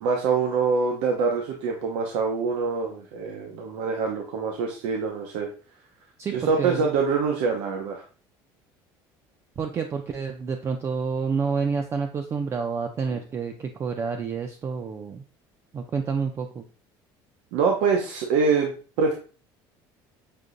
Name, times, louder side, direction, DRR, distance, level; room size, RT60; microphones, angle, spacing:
voice 1, 0.0-5.5 6.3-8.0 17.5-19.1, right 5 dB, 85° right, 1 dB, 0.7 m, -25 dB
voice 2, 6.2-6.8 9.6-15.2 15.7-16.6, right 5 dB, 30° right, 5 dB, 0.4 m, -29 dB
6.6 x 2.7 x 2.5 m, 0.39 s
cardioid pair, 140°, 10 cm